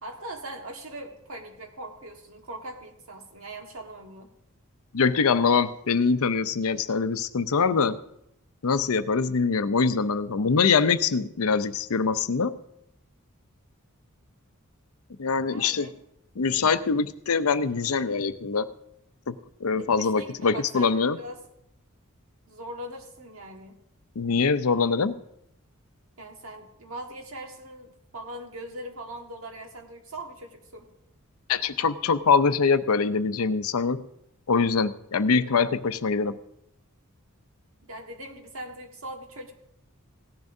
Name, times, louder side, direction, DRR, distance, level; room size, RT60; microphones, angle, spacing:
voice 1, 0.0-4.3 15.5-15.9 19.8-21.4 22.5-23.8 26.2-30.9 37.9-39.5, right 1 dB, 70° right, 2 dB, 1.6 m, -41 dB
voice 2, 4.9-8.0 8.6-12.6 15.2-15.9 16.4-18.7 19.3-19.4 19.6-21.2 24.2-25.2 31.5-34.0 34.5-36.4, left 5 dB, 85° left, 12 dB, 0.6 m, -23 dB
17.5 x 10.5 x 2.7 m, 0.79 s
head